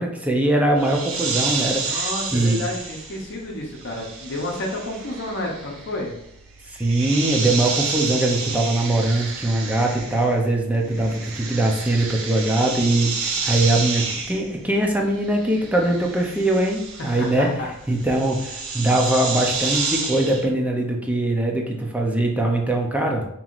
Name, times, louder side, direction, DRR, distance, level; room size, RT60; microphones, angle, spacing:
voice 1, 0.0-2.6 6.7-23.3, right 1 dB, 5° right, 1 dB, 0.5 m, -22 dB
sound 1, 0.8-10.5 10.7-20.5, right 4 dB, 70° right, 0.7 m, -30 dB
voice 2, 1.8-6.1 17.0-17.7, left 1 dB, 55° left, -1 dB, 0.7 m, -30 dB
5.4 x 3.0 x 2.5 m, 0.78 s
head